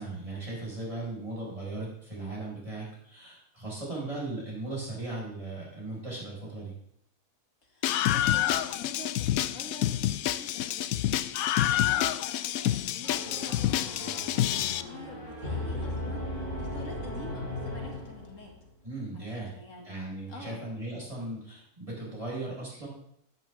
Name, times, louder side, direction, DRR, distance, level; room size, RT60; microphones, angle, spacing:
voice 1, 0.0-6.7 18.8-19.5 19.8-22.9, right 2 dB, 20° right, -5 dB, 5.0 m, -37 dB
voice 2, 7.6-14.3 14.6-16.3 16.6-18.6 19.1-19.9 20.3-20.6, left 2 dB, 60° left, 2 dB, 2.5 m, -46 dB
Screaming, 7.8-14.8, left 12 dB, 75° left, 1.0 m, -28 dB
sound 1, 13.0-18.6, left 1 dB, 85° right, 6.7 m, -37 dB
13.0 x 11.0 x 3.5 m, 0.69 s
omnidirectional pair, 1.5 m